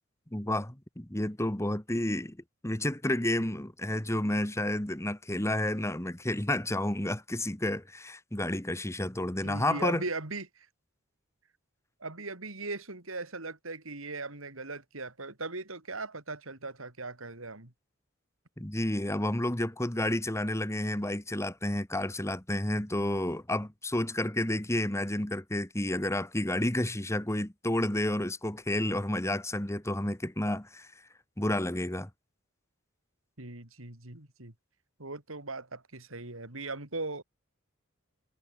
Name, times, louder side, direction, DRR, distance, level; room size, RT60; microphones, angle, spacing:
voice 1, 0.3-2.4 2.6-10.0 18.6-30.9 31.4-32.1, left 1 dB, 15° left, 1.7 m, -30 dB
voice 2, 9.4-10.7 12.0-17.7 33.4-34.5 35.0-37.2, right 3 dB, 80° right, 4.1 m, -39 dB
head